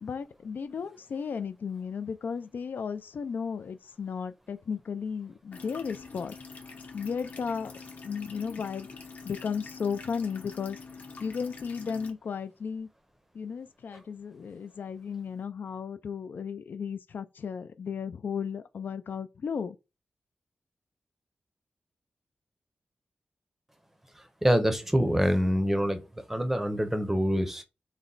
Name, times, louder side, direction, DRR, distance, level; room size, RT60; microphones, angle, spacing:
voice 1, 0.0-6.4 6.9-7.7 8.0-8.9 9.2-10.8 11.2-12.9 13.3-19.8, left 6 dB, 70° left, 0.3 m, -34 dB
sound 1, 5.5-12.1, left 4 dB, 50° left, 0.7 m, -45 dB
voice 2, 24.4-26.0 26.3-27.6, equal, 10° right, 0.6 m, -25 dB
4.1 x 2.1 x 3.8 m
wide cardioid pair, 110°, 3 cm